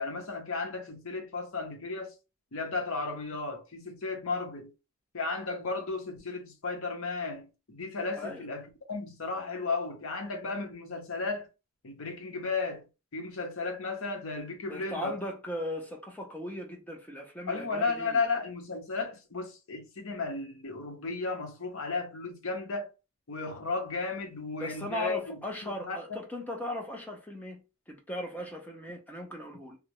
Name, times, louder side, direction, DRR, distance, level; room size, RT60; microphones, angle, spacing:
voice 1, 0.0-2.1 2.5-4.7 5.1-8.6 8.9-11.5 11.8-12.8 13.1-15.2 17.5-22.9 23.3-25.4 25.9-26.0, left 4 dB, 70° left, 0.7 m, -34 dB
voice 2, 14.7-18.3 24.6-29.8, left 1 dB, 10° left, 0.5 m, -38 dB
2.4 x 2.0 x 2.9 m
head